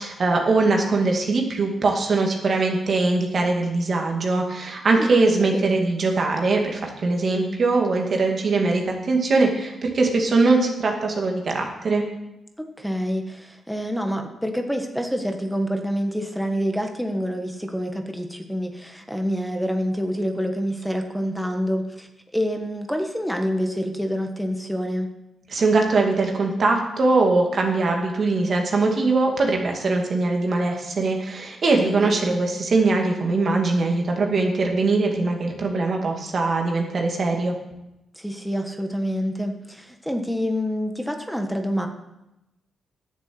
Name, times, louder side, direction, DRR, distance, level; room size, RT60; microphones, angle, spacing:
voice 1, 0.0-12.0 25.5-37.5, right 3 dB, 55° right, 2 dB, 2.4 m, -21 dB
voice 2, 5.0-5.8 12.6-25.1 31.7-32.4 38.1-41.9, equal, ahead, 4 dB, 1.6 m, -27 dB
10.0 x 7.2 x 7.9 m, 0.92 s
supercardioid pair, 55°, 0 cm